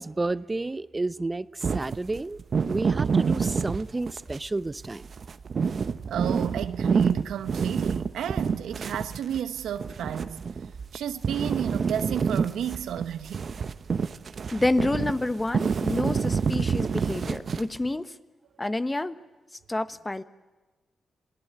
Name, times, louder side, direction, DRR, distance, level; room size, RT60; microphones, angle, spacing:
voice 1, 0.0-5.0, right 2 dB, 25° right, 0.7 m, -31 dB
sound 1, 1.6-4.4 4.8-11.0 11.2-17.9, right 5 dB, 55° right, 0.9 m, -27 dB
voice 2, 6.1-10.4 10.9-13.5, right 9 dB, 80° right, 1.0 m, -32 dB
voice 3, 14.5-18.1 18.6-19.2 19.7-20.2, left 2 dB, 20° left, 1.2 m, -28 dB
27.0 x 18.0 x 9.6 m
supercardioid pair, 50°, 0 cm